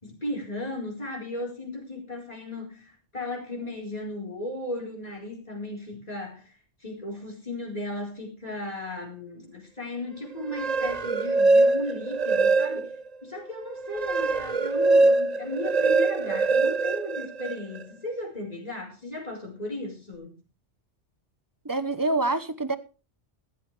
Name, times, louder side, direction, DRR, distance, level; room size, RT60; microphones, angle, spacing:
voice 1, 0.0-6.5 6.8-20.4, left 1 dB, 35° left, 4.7 m, -36 dB
sound 1, 10.4-13.1 13.5-17.8, right 3 dB, 40° right, 0.7 m, -23 dB
voice 2, 21.6-22.8, right 2 dB, 20° right, 0.9 m, -26 dB
16.0 x 14.0 x 3.4 m
omnidirectional pair, 1.2 m